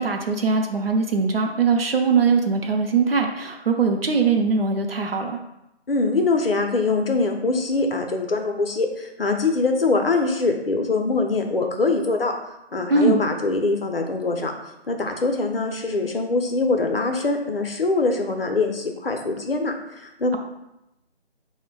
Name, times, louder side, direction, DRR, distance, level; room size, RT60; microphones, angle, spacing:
voice 1, 0.0-5.4 12.9-13.2, right 4 dB, 60° right, 3 dB, 0.5 m, -21 dB
voice 2, 5.9-12.3 12.7-14.5 14.9-20.4, left 3 dB, 60° left, 4 dB, 0.5 m, -23 dB
3.2 x 2.1 x 3.7 m, 0.88 s
figure-of-eight pair, 160°, 33 cm